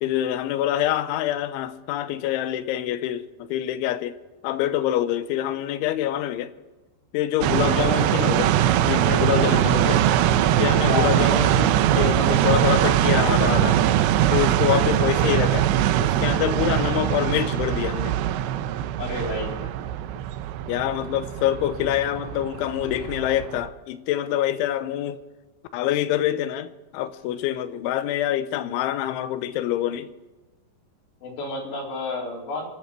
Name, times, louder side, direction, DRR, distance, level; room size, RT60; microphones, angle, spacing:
voice 1, 0.0-4.2 4.4-6.5 7.1-8.6 8.9-10.0 10.6-13.8 14.3-15.7 16.0-18.2 20.7-25.2 25.7-30.1, left 12 dB, 85° left, 3.3 m, -25 dB
sound 1, 7.4-23.7, right 11 dB, 80° right, 2.9 m, -22 dB
voice 2, 19.0-19.6 31.2-32.7, left 3 dB, 65° left, 6.3 m, -30 dB
26.0 x 11.5 x 4.5 m
omnidirectional pair, 5.4 m